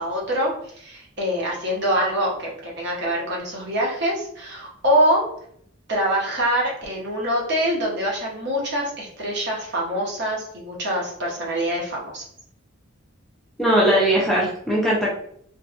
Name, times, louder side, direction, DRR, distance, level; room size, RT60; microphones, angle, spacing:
voice 1, 0.0-5.2 5.9-12.2, equal, 55° right, -3 dB, 0.8 m, -24 dB
voice 2, 13.6-15.1, right 1 dB, ahead, -6 dB, 0.4 m, -19 dB
2.6 x 2.2 x 2.4 m, 0.66 s
head